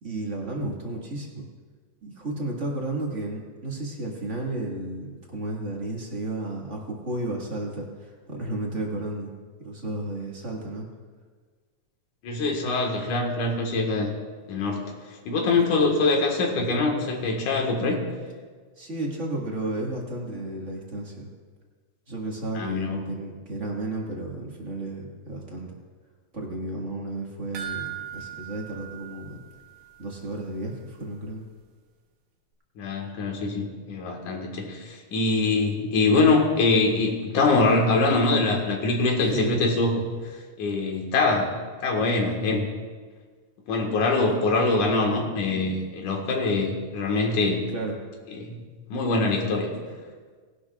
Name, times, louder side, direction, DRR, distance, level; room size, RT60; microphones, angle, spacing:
voice 1, 0.0-1.4 2.0-9.3 9.6-10.9 18.8-21.3 22.1-25.8 26.3-29.4 30.0-31.4 39.2-39.5 47.7-47.9, right 2 dB, 30° right, -1 dB, 1.6 m, -33 dB
voice 2, 12.2-14.1 14.5-14.9 15.3-18.0 22.5-23.1 32.8-39.9 40.6-41.5 41.8-42.7 43.7-47.7 48.4-48.6 48.9-49.7, left 3 dB, 80° left, 1 dB, 3.1 m, -23 dB
sound 1, 27.5-30.1 30.4-30.5 30.9-31.0, right 11 dB, 85° right, 2.7 m, -38 dB
19.5 x 11.5 x 2.4 m, 1.5 s
omnidirectional pair, 3.5 m